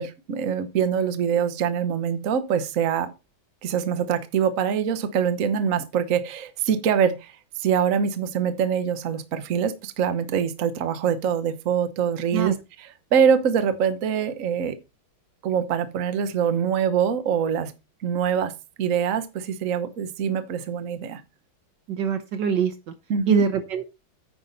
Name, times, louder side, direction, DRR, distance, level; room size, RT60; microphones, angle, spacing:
voice 1, 0.0-3.1 3.6-7.3 7.6-12.5 13.1-14.7 15.4-17.7 18.0-18.5 18.8-21.2 23.1-23.4, right 7 dB, 50° right, 1.2 m, -24 dB
voice 2, 21.9-22.9 23.3-23.9, right 6 dB, 65° right, 1.4 m, -24 dB
9.5 x 6.1 x 4.0 m
omnidirectional pair, 2.3 m